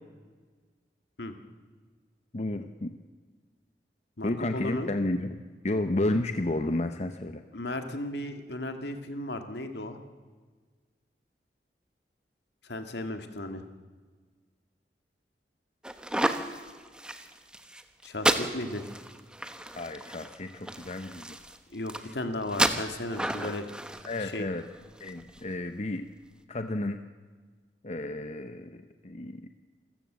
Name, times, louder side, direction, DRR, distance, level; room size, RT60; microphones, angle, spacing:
voice 1, 2.3-2.9 4.2-7.4 19.8-21.4 23.4-23.6 24.0-24.6 25.0-26.1 26.5-27.0 27.8-29.5, left 2 dB, 40° left, 8 dB, 0.8 m, -32 dB
voice 2, 4.2-4.9 7.5-10.0 12.6-13.6 18.0-18.9 21.7-23.6 24.2-24.5, left 1 dB, 70° left, 7 dB, 2.0 m, -35 dB
sound 1, 15.8-25.4, right 1 dB, 5° right, 1.0 m, -32 dB
27.0 x 14.5 x 7.4 m, 1.5 s
head